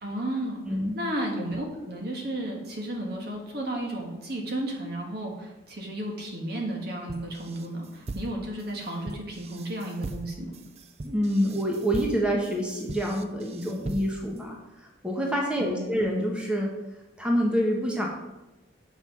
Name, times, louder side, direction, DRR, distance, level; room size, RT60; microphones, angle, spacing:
voice 1, 0.0-0.6 0.9-10.5 15.6-16.0, right 1 dB, 55° right, 0 dB, 1.8 m, -33 dB
voice 2, 0.6-1.0 11.0-14.5 15.0-16.7 17.2-18.1, equal, 5° right, -1 dB, 1.2 m, -26 dB
sound 1, 7.1-14.4, right 2 dB, 35° right, 0.4 m, -39 dB
6.9 x 5.8 x 5.6 m, 1.0 s
head